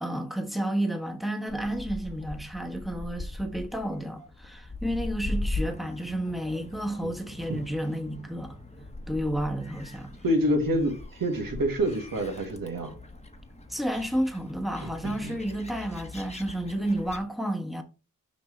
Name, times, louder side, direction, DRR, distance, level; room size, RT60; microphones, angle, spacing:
voice 1, 0.0-8.6 9.1-10.1 13.7-17.8, right 1 dB, ahead, 1.2 m, -31 dB
Gull seagull, 1.5-17.2, left 2 dB, 20° left, 1.1 m, -40 dB
voice 2, 10.2-13.0 14.8-15.4, equal, 80° right, 1.9 m, -27 dB
6.0 x 5.6 x 3.2 m
wide cardioid pair, 95°, 33 cm